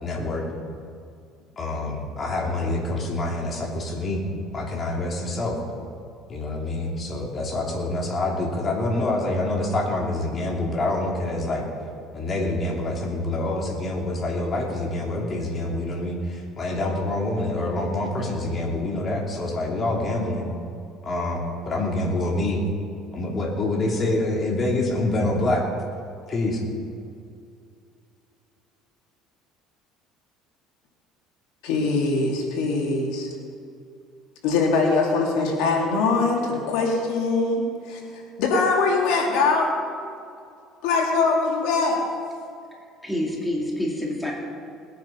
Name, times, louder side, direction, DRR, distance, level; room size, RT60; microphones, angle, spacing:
voice 1, 0.0-0.5 1.6-4.2 4.5-5.6 6.3-11.7 12.1-20.5 21.0-22.6 23.1-25.6 26.3-26.6, left 2 dB, 35° left, 0 dB, 2.8 m, -26 dB
voice 2, 31.6-33.3 34.4-38.0 38.4-39.7 40.8-42.0, left 3 dB, 80° left, 0 dB, 2.6 m, -22 dB
voice 3, 43.0-44.3, left 1 dB, 5° left, -2 dB, 2.6 m, -27 dB
19.5 x 9.5 x 5.7 m, 2.4 s
cardioid pair, 125°, 0 cm